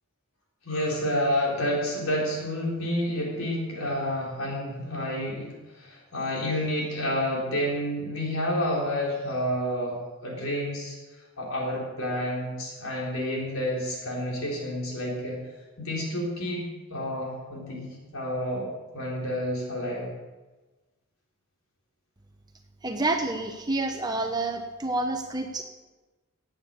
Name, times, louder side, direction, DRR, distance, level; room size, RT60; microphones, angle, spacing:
voice 1, 0.6-15.4 15.8-20.1, equal, 75° left, -3 dB, 3.9 m, -29 dB
voice 2, 22.8-25.6, right 2 dB, 20° right, 4 dB, 0.9 m, -28 dB
16.5 x 9.0 x 6.8 m, 1.2 s
head